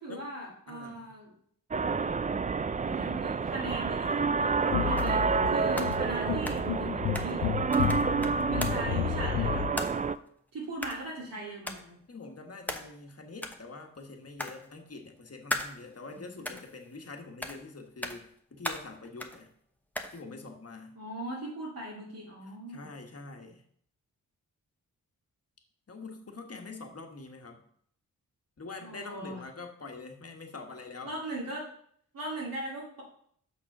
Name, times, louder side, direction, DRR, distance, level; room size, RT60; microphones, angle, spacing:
voice 1, 0.0-1.3 2.8-7.5 8.5-10.0 10.5-12.0 16.1-16.5 21.0-23.0 28.8-29.4 31.0-31.7 32.1-33.0, right 1 dB, 75° right, -6 dB, 2.4 m, -39 dB
voice 2, 0.7-1.1 12.1-19.5 20.1-21.0 22.7-23.6 25.9-27.6 28.6-31.2, left 3 dB, 45° left, 4 dB, 1.5 m, -45 dB
sound 1, 1.7-10.2, right 5 dB, 25° right, 0.3 m, -29 dB
sound 2, 3.7-3.8 5.0-5.4 5.7-7.4 7.7-9.0 9.8-10.3 10.8-11.2 11.7-11.9 12.7-13.1 13.4-13.6 14.4-15.0 15.5-16.2 16.4-17.1 17.4-17.7 18.0-18.4 18.6-19.4 19.9-20.2, left 1 dB, 5° left, 1.0 m, -38 dB
sound 3, 4.7-9.7, left 12 dB, 80° left, 0.5 m, -32 dB
6.2 x 6.1 x 5.5 m, 0.65 s
cardioid pair, 60°, 35 cm